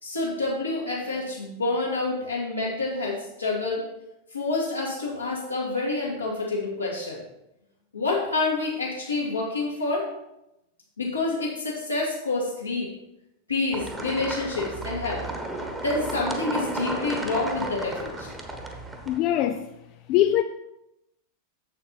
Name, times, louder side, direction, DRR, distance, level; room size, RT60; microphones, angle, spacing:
voice 1, 0.0-3.8 4.3-7.2 7.9-10.1 11.0-12.9 13.5-15.2 15.8-18.3, left 3 dB, 80° left, 2.9 m, -28 dB
sound 1, 13.7-19.2, right 2 dB, 10° right, 1.1 m, -33 dB
voice 2, 19.1-19.6 20.1-20.4, left 12 dB, 40° left, 0.4 m, -22 dB
7.3 x 7.3 x 4.7 m
figure-of-eight pair, 90°, 0 cm